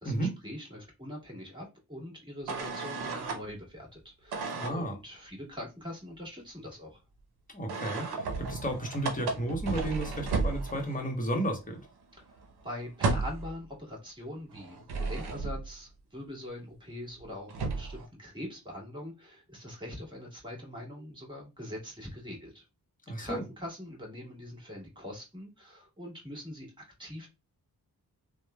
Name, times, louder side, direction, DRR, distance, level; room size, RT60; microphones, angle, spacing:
voice 1, 0.0-7.0 12.1-22.6 23.2-27.3, left 1 dB, 10° right, 1.6 m, -43 dB
sound 1, 2.5-3.4 4.3-4.8 7.7-11.1 11.4-11.6 11.8-13.5 14.5-15.7 17.2-17.3 17.5-18.1, right 3 dB, 80° right, 0.7 m, -33 dB
voice 2, 4.5-5.0 7.5-11.8 23.1-23.4, right 1 dB, 20° left, 1.0 m, -33 dB
2.9 x 2.2 x 2.2 m
cardioid pair, 50°, 38 cm